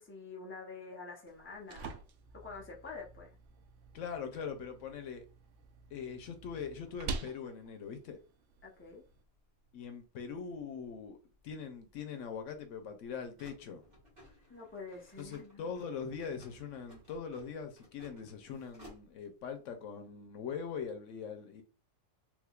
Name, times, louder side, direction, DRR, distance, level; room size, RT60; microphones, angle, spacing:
voice 1, 0.0-2.0 2.3-3.3 8.6-9.0 14.5-15.7, left 4 dB, 10° left, 0.7 m, -47 dB
sound 1, 1.3-9.2, right 4 dB, 70° right, 0.8 m, -47 dB
voice 2, 3.9-5.2 5.9-8.2 9.7-11.2 11.4-13.8 15.2-21.6, left 6 dB, 90° left, 1.1 m, -42 dB
sound 2, 8.7-19.5, equal, 40° right, 1.5 m, -60 dB
3.5 x 3.0 x 2.3 m
omnidirectional pair, 1.3 m